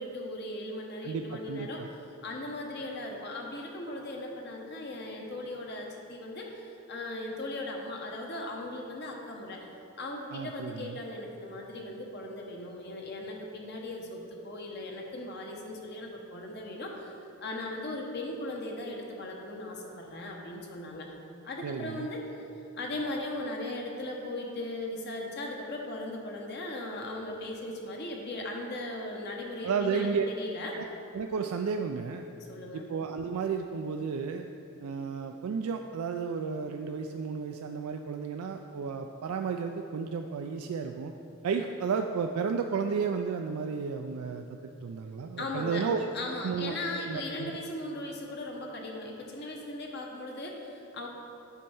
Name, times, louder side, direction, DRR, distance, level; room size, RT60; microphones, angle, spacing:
voice 1, 0.0-1.8 2.2-9.6 10.0-17.1 17.4-21.1 21.4-22.3 22.7-30.8 32.4-32.8 45.4-45.8 46.1-51.1, left 2 dB, 50° left, 0 dB, 0.9 m, -38 dB
voice 2, 1.0-1.9 10.3-11.0 21.6-22.1 29.6-30.3 30.7-30.8 31.1-32.3 32.7-34.5 34.8-41.1 41.4-46.0 46.4-47.6, right 5 dB, 80° right, 4 dB, 0.3 m, -33 dB
8.4 x 4.4 x 5.4 m, 2.8 s
head